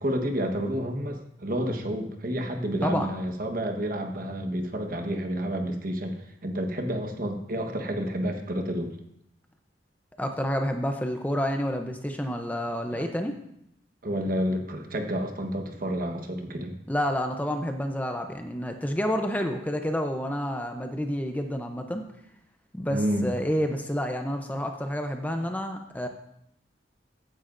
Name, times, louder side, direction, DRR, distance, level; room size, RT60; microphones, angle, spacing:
voice 1, 0.0-9.0 12.9-13.1 14.0-16.7 22.9-23.3, equal, 50° right, 4 dB, 1.2 m, -30 dB
voice 2, 10.2-13.3 16.9-22.0 22.7-26.1, equal, 10° left, 5 dB, 0.6 m, -29 dB
14.5 x 9.6 x 2.6 m, 0.79 s
head